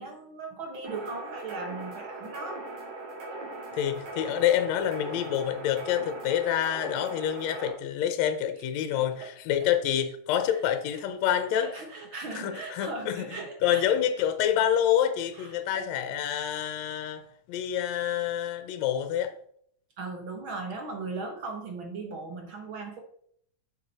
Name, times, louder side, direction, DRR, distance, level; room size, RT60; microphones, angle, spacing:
voice 1, 0.0-2.6 9.2-9.6 10.5-10.6 10.9-11.0 11.5-13.9 14.2-14.3 15.3-15.9 20.0-23.0, right 3 dB, 55° right, 1.5 m, -38 dB
sound 1, 0.8-7.7, right 2 dB, 75° right, 3.8 m, -40 dB
voice 2, 3.7-11.7 12.3-13.3 13.6-17.2 17.5-19.3, left 10 dB, 75° left, 1.9 m, -27 dB
7.4 x 7.3 x 4.0 m
omnidirectional pair, 3.3 m